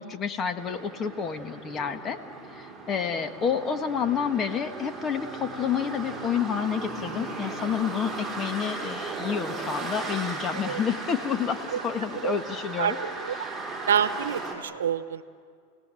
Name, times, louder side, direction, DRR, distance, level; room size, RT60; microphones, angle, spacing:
voice 1, 0.0-2.2 2.5-13.0 13.4-13.5, left 7 dB, 30° left, 8 dB, 1.6 m, -29 dB
sound 1, 0.6-14.6, right 3 dB, 10° right, 5.6 m, -36 dB
voice 2, 12.8-13.3 13.9-15.2, right 8 dB, 90° right, 14 dB, 0.9 m, -27 dB
30.0 x 18.0 x 7.7 m, 2.1 s
hypercardioid pair, 115°, 0 cm